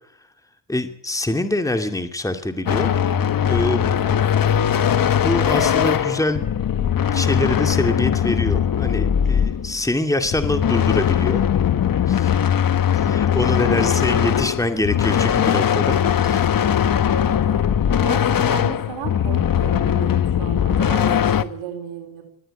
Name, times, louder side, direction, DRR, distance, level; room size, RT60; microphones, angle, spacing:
voice 1, 0.7-2.9 3.5-4.0 5.2-6.5 7.1-11.4 12.1-12.3 12.9-16.5, left 2 dB, 5° left, 7 dB, 2.2 m, -24 dB
sound 1, 2.7-9.8 10.2-21.4, left 9 dB, 45° left, 1.3 m, -20 dB
voice 2, 13.6-14.3 17.1-17.7 18.0-22.2, right 8 dB, 85° right, 3 dB, 4.2 m, -35 dB
20.0 x 14.5 x 10.0 m, 0.72 s
cardioid pair, 80°, 47 cm